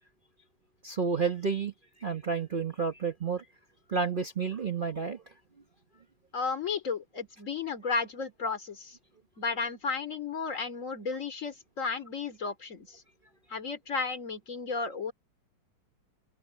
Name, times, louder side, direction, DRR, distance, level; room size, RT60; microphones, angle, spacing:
voice 1, 0.8-1.7 2.0-3.4 3.9-5.2, right 5 dB, 50° right, 0.6 m, -30 dB
voice 2, 6.3-9.0 9.4-13.0 13.5-15.1, left 4 dB, 35° left, 2.8 m, -33 dB
omnidirectional pair, 2.3 m